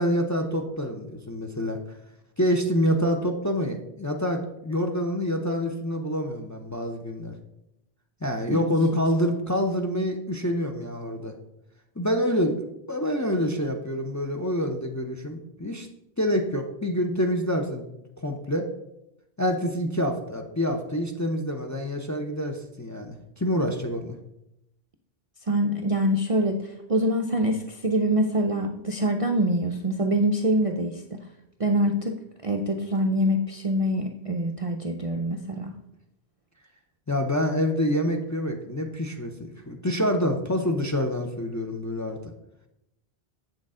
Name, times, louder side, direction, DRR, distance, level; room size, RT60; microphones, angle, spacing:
voice 1, 0.0-1.8 2.4-7.4 8.2-11.3 12.0-12.5 12.9-15.9 16.2-17.8 18.2-18.7 19.4-24.2 37.1-42.3, equal, 20° left, 2 dB, 0.5 m, -27 dB
voice 2, 25.5-31.2 31.6-35.7, equal, 45° right, 3 dB, 0.4 m, -25 dB
7.8 x 6.4 x 3.7 m, 0.85 s
omnidirectional pair, 1.1 m